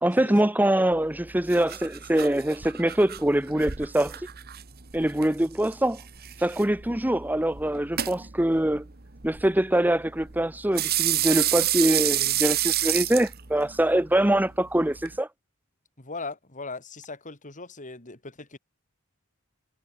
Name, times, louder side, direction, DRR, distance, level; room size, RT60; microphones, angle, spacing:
voice 1, 0.0-4.2 4.9-6.0 6.4-8.9 9.2-15.3, right 1 dB, 10° right, 0.8 m, -24 dB
sound 1, 0.9-15.2, right 13 dB, 45° right, 1.4 m, -31 dB
voice 2, 16.0-18.6, left 3 dB, 35° left, 3.0 m, -39 dB
head